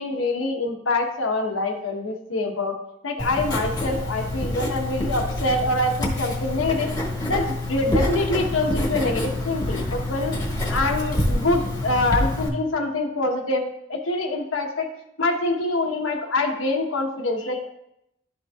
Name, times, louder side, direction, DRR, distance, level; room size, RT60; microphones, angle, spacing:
voice 1, 0.0-2.8 3.0-6.9 7.2-10.3 10.7-14.9 15.2-17.7, left 2 dB, 85° left, 1 dB, 1.1 m, -25 dB
Writing, 3.2-12.5, left 1 dB, 20° left, 1.3 m, -27 dB
12.0 x 5.3 x 2.4 m, 0.81 s
head